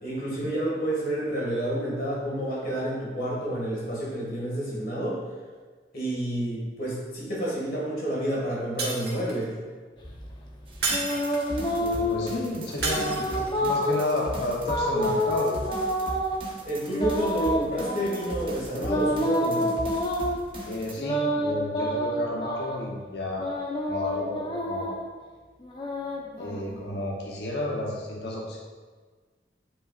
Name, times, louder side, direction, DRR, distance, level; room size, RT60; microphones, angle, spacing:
voice 1, 0.0-5.2 5.9-9.5 16.6-19.7, right 1 dB, 55° left, -5 dB, 2.0 m, -29 dB
Shatter, 8.8-9.5 10.8-11.6 12.8-13.6, right 3 dB, 65° right, 1.7 m, -31 dB
sound 1, 10.0-12.3 12.8-14.0 14.6-16.4 16.9-18.3 18.9-20.4 21.0-22.8 23.4-25.0 25.6-27.0, equal, 25° left, 0.8 m, -28 dB
sound 2, 10.7-20.9, right 1 dB, 30° right, 1.1 m, -38 dB
voice 2, 11.7-15.6 20.6-23.5 23.9-24.9 26.4-28.6, left 1 dB, 70° left, -3 dB, 1.0 m, -31 dB
9.9 x 5.6 x 2.5 m, 1.4 s
head